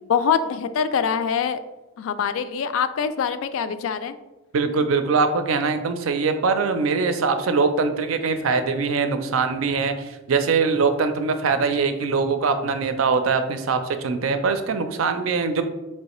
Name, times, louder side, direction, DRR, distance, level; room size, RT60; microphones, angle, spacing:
voice 1, 0.1-1.6 2.0-4.2, left 6 dB, 75° left, 12 dB, 0.3 m, -24 dB
voice 2, 4.5-15.6, right 4 dB, 85° right, 8 dB, 0.4 m, -22 dB
4.5 x 3.2 x 2.9 m, 1.1 s
head